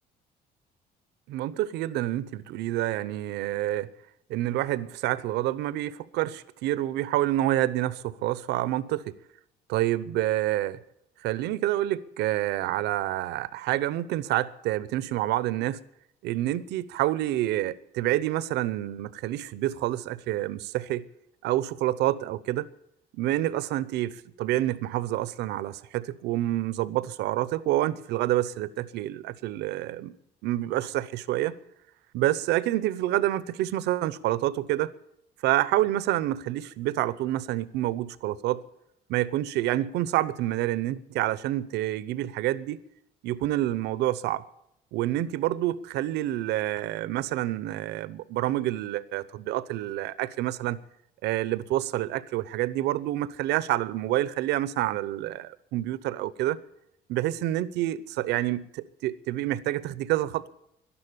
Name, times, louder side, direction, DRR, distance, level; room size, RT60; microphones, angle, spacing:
voice 1, 1.3-3.9 4.3-9.2 9.7-10.8 11.2-15.8 16.2-21.1 21.4-22.7 23.1-30.2 30.4-31.6 32.1-34.9 35.4-38.6 39.1-42.8 43.2-44.5 44.9-50.8 51.2-56.6 57.1-60.5, right 14 dB, 85° right, 0.8 m, -28 dB
12.0 x 11.5 x 9.8 m
cardioid pair, 110°, 17 cm